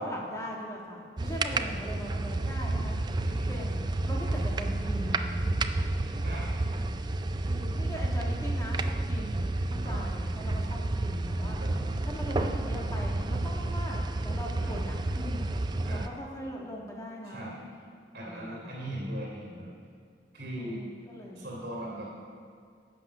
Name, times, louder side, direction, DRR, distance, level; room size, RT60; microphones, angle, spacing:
voice 1, 0.0-3.0 3.5-5.3 7.4-11.6 12.0-15.5 15.9-17.6 18.2-18.9 20.5-21.5 21.8-22.1, equal, 20° left, -2 dB, 1.5 m, -40 dB
sound 1, 1.2-16.1, right 2 dB, 25° right, 0.3 m, -30 dB
voice 2, 1.4-1.7 3.2-3.6 6.2-6.5 9.8-10.0 11.6-11.7 14.6-14.8 15.8-16.1 17.2-17.6 18.1-19.7 20.3-20.8 21.4-22.1, right 1 dB, 70° right, -5 dB, 2.6 m, -39 dB
12.0 x 7.8 x 6.1 m, 2.1 s
head